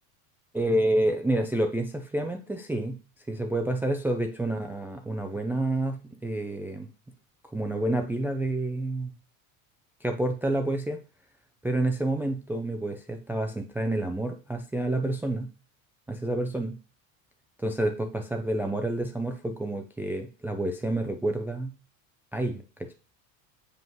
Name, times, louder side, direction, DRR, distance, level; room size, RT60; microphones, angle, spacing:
voice 1, 0.5-3.0 3.3-6.9 7.5-9.1 10.0-11.0 11.6-15.5 16.1-16.7 17.6-21.7 22.3-22.9, right 1 dB, 5° right, 5 dB, 0.4 m, -29 dB
7.6 x 5.4 x 3.0 m, 0.35 s
supercardioid pair, 130°, 42 cm